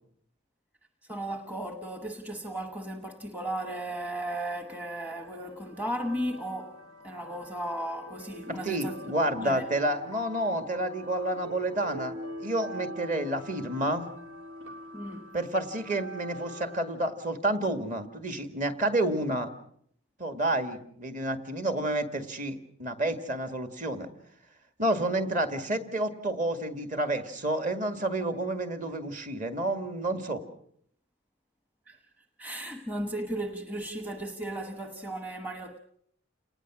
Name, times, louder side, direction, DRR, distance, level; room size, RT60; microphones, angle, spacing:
voice 1, 1.0-6.8 7.0-9.0 9.4-9.6 14.9-15.4 31.9-35.8, right 1 dB, 10° right, 1.0 m, -35 dB
sound 1, 4.6-16.9, equal, 90° right, 2.7 m, -44 dB
voice 2, 8.5-14.0 15.3-19.5 20.2-24.1 24.8-30.4, right 1 dB, 35° right, 2.0 m, -30 dB
29.5 x 19.0 x 6.2 m
head